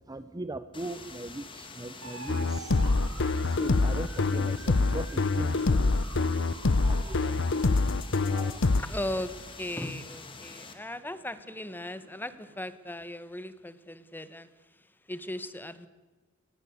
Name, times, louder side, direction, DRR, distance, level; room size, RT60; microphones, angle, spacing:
voice 1, 0.0-5.9 6.8-7.4 7.8-7.9 8.2-8.6, right 2 dB, 20° right, 13 dB, 0.7 m, -40 dB
sound 1, 0.7-10.7, left 4 dB, 25° left, 2.6 m, -46 dB
sound 2, 2.0-12.7, right 3 dB, 70° right, 4.4 m, -49 dB
sound 3, 2.3-8.8, left 3 dB, 60° left, 0.8 m, -25 dB
voice 2, 8.8-14.5 14.8-15.9, left 1 dB, 10° left, 13 dB, 1.3 m, -38 dB
23.0 x 20.0 x 8.3 m, 1.2 s
head